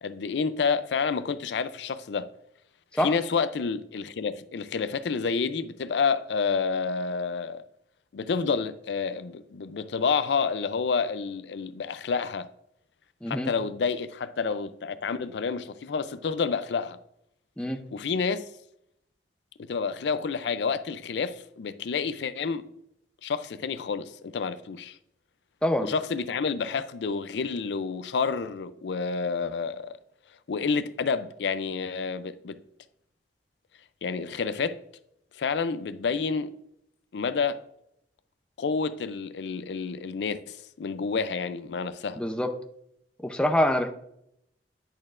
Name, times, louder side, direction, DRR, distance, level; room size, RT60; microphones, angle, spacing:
voice 1, 0.0-2.3 2.9-7.6 8.1-12.5 13.3-17.0 17.9-18.5 19.7-22.6 23.2-25.0 25.8-29.9 30.5-32.6 34.0-34.8 35.4-36.5 37.1-37.6 38.6-42.2, left 5 dB, 75° left, 0.4 m, -29 dB
voice 2, 13.2-13.5 17.6-17.8 25.6-25.9 42.2-42.5 43.2-43.9, left 1 dB, 5° left, 0.5 m, -25 dB
10.5 x 6.4 x 2.5 m
head